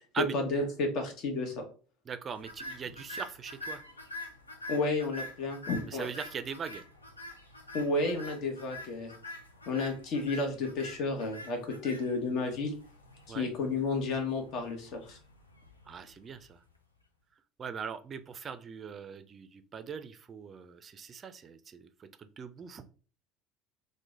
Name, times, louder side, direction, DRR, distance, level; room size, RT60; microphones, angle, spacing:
voice 1, 0.3-1.6 4.7-6.1 7.7-9.1 9.7-12.7 13.3-15.2, left 3 dB, 50° left, 4 dB, 1.0 m, -32 dB
voice 2, 2.1-3.8 5.9-6.8 13.3-13.5 15.9-16.6 17.6-22.9, right 6 dB, 35° right, 10 dB, 0.4 m, -41 dB
sound 1, 2.4-16.7, left 1 dB, 90° left, 0.5 m, -46 dB
3.0 x 2.1 x 3.6 m, 0.39 s
figure-of-eight pair, 70°, 0 cm